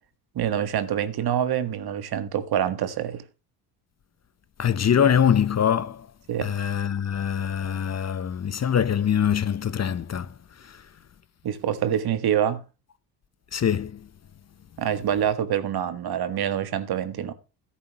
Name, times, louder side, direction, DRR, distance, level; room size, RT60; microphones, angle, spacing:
voice 1, 0.3-3.2 6.3-6.5 11.4-12.6 14.8-17.3, right 9 dB, 55° right, 1.6 m, -26 dB
voice 2, 4.6-6.1 6.4-10.3 10.7-10.8 13.5-14.0, left 8 dB, 35° left, 0.9 m, -23 dB
13.0 x 11.5 x 3.0 m
supercardioid pair, 70°, 46 cm